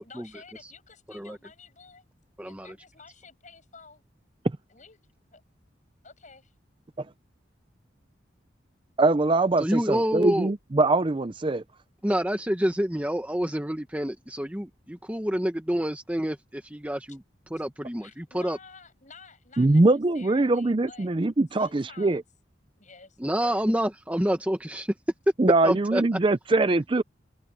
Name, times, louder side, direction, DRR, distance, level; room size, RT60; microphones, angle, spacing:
voice 1, 0.0-2.1 2.4-4.0 4.7-5.0 5.3-5.4 6.0-6.5 18.0-21.1 21.6-22.2 22.8-23.6, left 4 dB, 45° left, 7.7 m, -51 dB
voice 2, 2.4-2.7 9.6-10.5 12.0-17.2 17.5-18.6 23.2-24.9 25.6-26.0, equal, 10° right, 1.2 m, -28 dB
voice 3, 9.0-11.6 19.6-22.2 25.4-27.0, right 2 dB, 30° right, 0.5 m, -22 dB
head